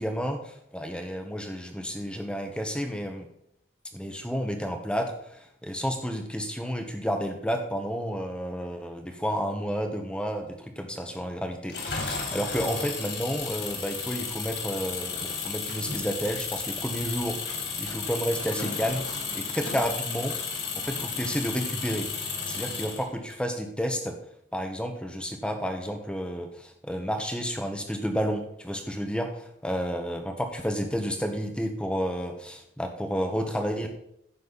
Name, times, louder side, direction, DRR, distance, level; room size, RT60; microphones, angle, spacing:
voice 1, 0.0-3.3 3.9-24.1 24.5-33.9, equal, 5° left, 4 dB, 1.2 m, -31 dB
Engine, 11.7-23.3, left 5 dB, 65° left, 3.3 m, -33 dB
15.0 x 6.6 x 4.1 m, 0.75 s
head